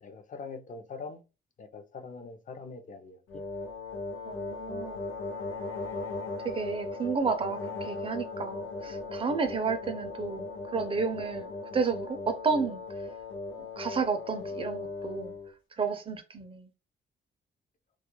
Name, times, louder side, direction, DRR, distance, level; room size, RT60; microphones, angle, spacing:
voice 1, 0.0-1.2 1.6-3.4, left 4 dB, 40° left, 0.5 m, -43 dB
sound 1, 3.3-15.5, left 3 dB, 85° left, 0.6 m, -38 dB
voice 2, 4.2-5.0 6.4-12.8 13.6-15.3 15.8-16.7, right 5 dB, 30° right, 0.4 m, -32 dB
2.3 x 2.1 x 2.9 m
cardioid pair, 140°, 20 cm